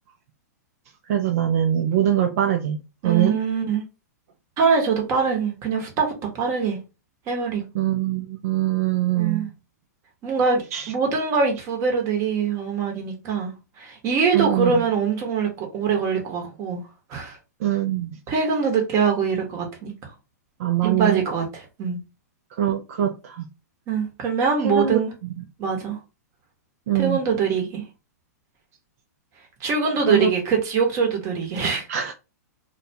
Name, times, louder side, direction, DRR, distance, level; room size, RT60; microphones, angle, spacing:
voice 1, 1.1-3.4 7.7-9.5 10.7-10.9 14.3-14.8 17.6-18.2 20.6-21.2 22.6-23.5 24.6-25.0 26.9-27.2 30.0-30.3 31.9-32.2, right 10 dB, 60° right, 0.4 m, -23 dB
voice 2, 3.0-3.8 4.6-6.8 7.3-7.6 9.2-9.5 10.2-16.8 17.1-17.4 18.3-20.1 20.8-22.0 23.9-25.1 25.6-26.0 26.9-27.8 29.6-31.9, right 5 dB, 30° right, 0.9 m, -23 dB
2.4 x 2.2 x 2.7 m
hypercardioid pair, 135°, 9 cm